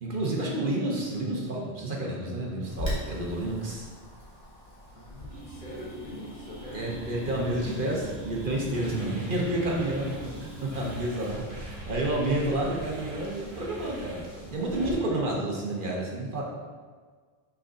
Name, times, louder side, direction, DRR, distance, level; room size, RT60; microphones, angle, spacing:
voice 1, 0.0-3.9 6.7-16.4, right 1 dB, 55° right, -2 dB, 1.2 m, -30 dB
Wind, 2.7-14.9, left 1 dB, 25° left, 1.7 m, -43 dB
voice 2, 5.0-6.9, left 1 dB, 55° left, -4 dB, 1.2 m, -43 dB
sound 1, 5.3-11.0, right 1 dB, 85° right, 1.5 m, -43 dB
sound 2, 6.6-14.9, equal, 35° right, 1.4 m, -44 dB
6.4 x 5.6 x 2.6 m, 1.6 s
omnidirectional pair, 1.0 m